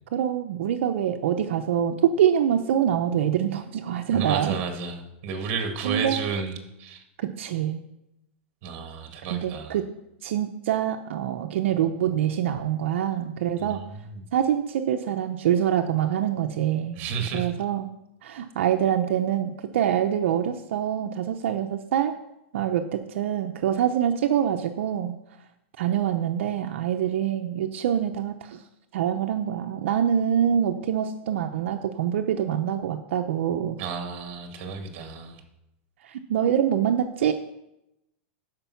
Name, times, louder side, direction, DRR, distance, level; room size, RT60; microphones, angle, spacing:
voice 1, 0.1-4.6 5.8-6.2 7.2-7.8 9.3-9.9 10.2-13.8 14.3-17.0 17.3-17.8 18.2-22.1 22.5-25.1 25.8-28.6 28.9-33.8 36.0-37.3, right 9 dB, 75° right, 5 dB, 0.7 m, -25 dB
voice 2, 4.1-7.0 8.6-9.8 13.6-14.3 17.0-17.5 33.8-35.4, right 5 dB, 40° right, 5 dB, 1.9 m, -32 dB
12.5 x 5.3 x 5.8 m, 0.87 s
supercardioid pair, 150°, 7 cm